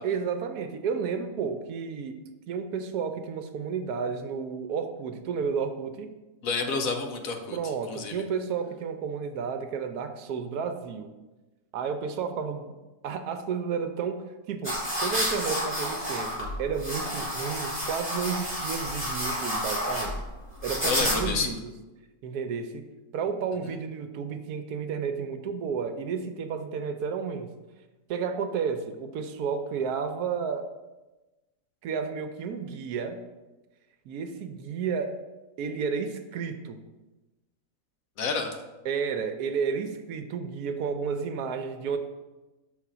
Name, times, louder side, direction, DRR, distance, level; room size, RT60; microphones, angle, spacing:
voice 1, 0.0-2.1 2.5-6.1 7.5-11.1 11.7-12.7 13.0-20.1 20.6-21.7 22.2-22.9 23.1-27.5 28.1-30.7 31.8-33.2 34.1-35.2 35.6-36.8 38.8-42.0, right 6 dB, 85° right, 7 dB, 1.2 m, -32 dB
voice 2, 6.4-7.6 7.9-8.2 20.8-21.5 38.2-38.5, left 4 dB, 65° left, 5 dB, 1.1 m, -29 dB
sound 1, 14.6-21.5, equal, 10° left, 2.2 m, -30 dB
5.7 x 4.0 x 6.1 m, 1.1 s
omnidirectional pair, 1.6 m